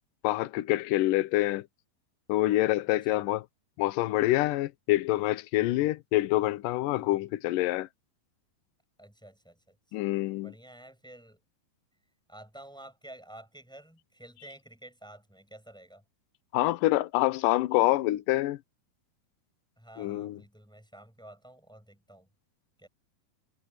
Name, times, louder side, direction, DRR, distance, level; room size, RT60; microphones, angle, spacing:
voice 1, 0.2-1.6 2.3-3.4 3.8-7.9 9.9-10.5 16.5-18.6 20.0-20.4, left 16 dB, 75° left, 2.2 m, -26 dB
voice 2, 2.9-3.2 5.6-5.9 6.9-7.3 9.0-9.8 10.4-11.4 12.3-16.0 19.8-22.3 22.8-22.9, right 1 dB, ahead, 5.9 m, -50 dB
omnidirectional pair, 4.3 m